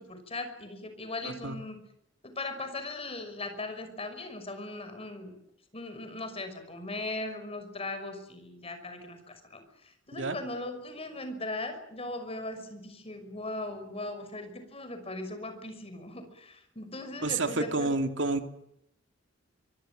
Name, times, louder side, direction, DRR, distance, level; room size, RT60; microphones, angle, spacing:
voice 1, 0.0-1.8 2.2-5.4 5.7-17.9, left 2 dB, 30° left, 8 dB, 6.0 m, -39 dB
voice 2, 1.2-1.6 10.1-10.4 17.2-18.5, right 3 dB, 70° right, 8 dB, 2.6 m, -29 dB
24.5 x 24.5 x 7.7 m, 0.76 s
head